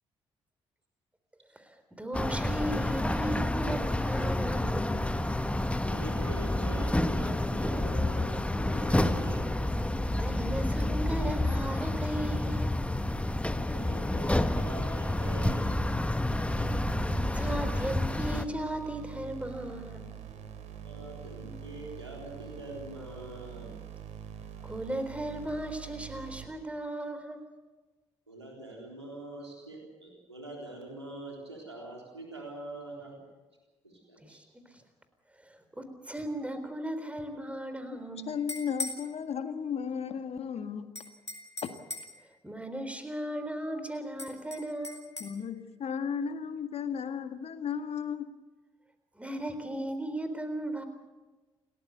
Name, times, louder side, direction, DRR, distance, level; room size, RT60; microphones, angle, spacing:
voice 1, 1.5-5.1 10.1-12.7 17.0-20.1 24.6-27.4 34.2-34.4 35.4-38.4 42.4-45.1 49.2-50.8, right 1 dB, 10° right, 9 dB, 3.9 m, -36 dB
sound 1, 2.1-18.4, left 1 dB, 10° left, 1.3 m, -29 dB
voice 2, 5.8-9.5 13.5-15.9 20.8-23.7 28.3-33.2 33.8-34.4, right 1 dB, 85° right, -1 dB, 3.7 m, -44 dB
sound 2, 16.5-26.5, right 9 dB, 55° right, 2.7 m, -45 dB
sound 3, 38.3-39.0 41.0-42.2 44.2-45.3, left 2 dB, 90° left, 1.6 m, -39 dB
voice 3, 38.3-40.9 41.6-41.7 45.2-48.2, left 7 dB, 45° left, 9 dB, 1.8 m, -34 dB
29.0 x 14.0 x 8.1 m, 1.2 s
figure-of-eight pair, 40°, 14 cm